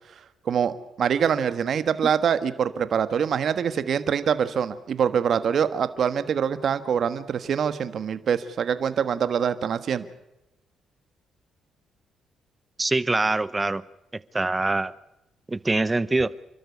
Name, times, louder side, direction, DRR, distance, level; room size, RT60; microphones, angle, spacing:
voice 1, 0.4-10.1, right 7 dB, 60° right, 12 dB, 1.5 m, -24 dB
voice 2, 12.8-13.8 14.3-14.9 15.5-16.3, right 2 dB, 20° right, 18 dB, 0.8 m, -24 dB
29.5 x 12.5 x 8.1 m, 0.91 s
cardioid pair, 90°, 0 cm